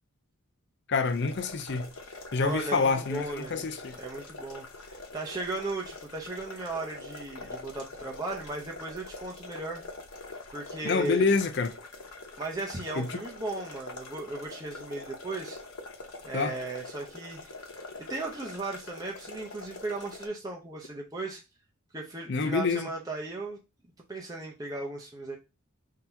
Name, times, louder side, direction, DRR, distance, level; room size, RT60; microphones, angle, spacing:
voice 1, 0.9-1.9 2.3-4.0 10.8-11.7 13.0-13.2 16.3-16.6 22.3-22.9, left 4 dB, 55° left, 0.6 m, -27 dB
sound 1, 1.0-20.3, left 3 dB, 90° left, 1.0 m, -44 dB
voice 2, 2.4-3.7 4.0-9.8 10.5-11.3 12.4-15.6 16.2-17.5 18.0-21.4 21.9-23.6 24.1-25.4, right 2 dB, 15° right, 0.7 m, -36 dB
3.9 x 2.8 x 4.4 m
head